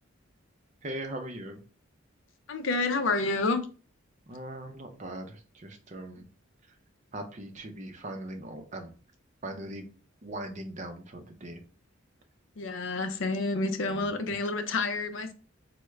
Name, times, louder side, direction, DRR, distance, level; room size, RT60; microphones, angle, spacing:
voice 1, 0.8-1.6 4.3-6.3 7.1-8.9 9.4-9.9 10.2-11.6 13.9-14.1, right 1 dB, 35° right, 0.5 m, -40 dB
voice 2, 2.5-3.7 12.6-15.3, left 3 dB, 65° left, 0.5 m, -29 dB
3.4 x 2.1 x 3.1 m
head